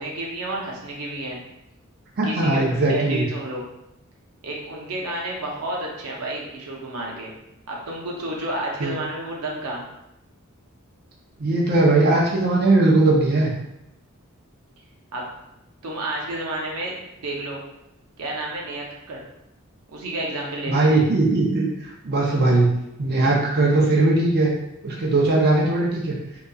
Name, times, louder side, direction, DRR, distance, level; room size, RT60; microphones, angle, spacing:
voice 1, 0.0-1.4 2.2-3.7 4.4-7.3 7.7-9.8 15.1-15.2 15.8-17.6 18.2-19.2 19.9-20.9 23.2-23.3, right 1 dB, 90° right, -2 dB, 0.6 m, -30 dB
voice 2, 2.2-3.3 8.8-8.9 11.4-13.5 20.7-22.7 23.0-24.5 24.8-26.2, right 2 dB, 50° right, -3 dB, 0.5 m, -19 dB
2.7 x 2.3 x 2.3 m, 0.85 s
head